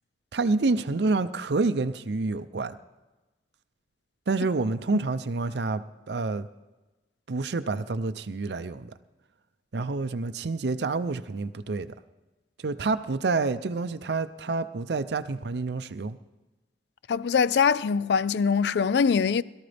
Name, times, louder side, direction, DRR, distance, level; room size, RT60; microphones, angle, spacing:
voice 1, 0.3-2.8 4.3-6.5 7.3-8.9 9.7-12.0 12.6-16.2, right 3 dB, 65° right, 0.5 m, -28 dB
voice 2, 17.1-19.4, left 6 dB, 65° left, 0.4 m, -23 dB
21.5 x 13.0 x 3.4 m
head